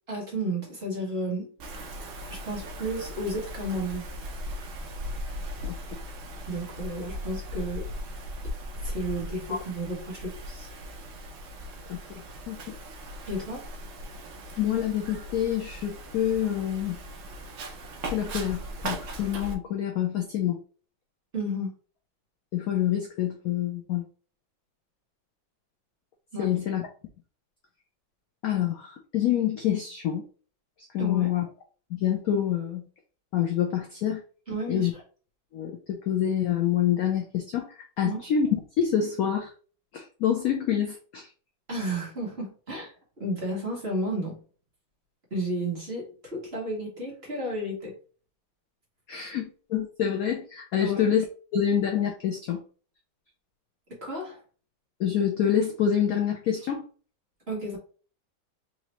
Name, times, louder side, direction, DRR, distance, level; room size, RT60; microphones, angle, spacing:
voice 1, 0.1-1.5 2.3-4.1 6.5-7.9 8.4-8.5 8.8-10.7 13.3-13.7 21.3-21.7 26.3-26.5 31.0-31.3 34.5-34.9 38.0-38.2 41.7-44.4 45.3-47.9 50.8-51.0 53.9-54.4 57.5-57.8, right 1 dB, 35° right, -3 dB, 1.4 m, -32 dB
Wind, 1.6-19.5, equal, 70° right, 0.7 m, -38 dB
voice 2, 11.9-12.7 14.6-17.0 18.1-20.6 22.5-24.0 26.4-26.8 28.4-30.2 30.9-31.4 31.9-32.9 33.3-34.2 34.7-34.9 35.5-37.7 38.0-38.5 38.8-39.5 39.9-41.3 49.1-51.2 51.5-52.6 55.0-56.8, left 9 dB, 75° left, 3 dB, 0.8 m, -27 dB
4.2 x 2.7 x 2.9 m, 0.40 s
omnidirectional pair, 2.1 m